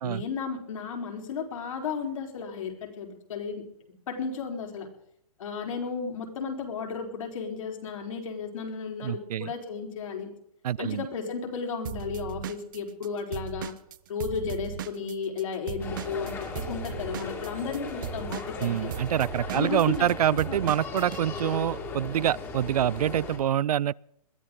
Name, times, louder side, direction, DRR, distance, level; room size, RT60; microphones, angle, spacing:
voice 1, 0.0-3.6 4.1-4.9 5.4-10.3 10.8-13.7 14.1-18.9 19.5-20.1 20.5-20.6, left 5 dB, 60° left, 4.1 m, -34 dB
voice 2, 9.0-9.5 10.6-11.1 18.6-23.9, right 11 dB, 90° right, 0.4 m, -26 dB
Drum kit / Drum, 11.8-15.4 15.7-21.2, right 9 dB, 35° right, 0.6 m, -37 dB
sound 1, 15.8-23.4, left 4 dB, 15° left, 2.2 m, -37 dB
21.5 x 13.5 x 3.8 m
hypercardioid pair, 170°, 19 cm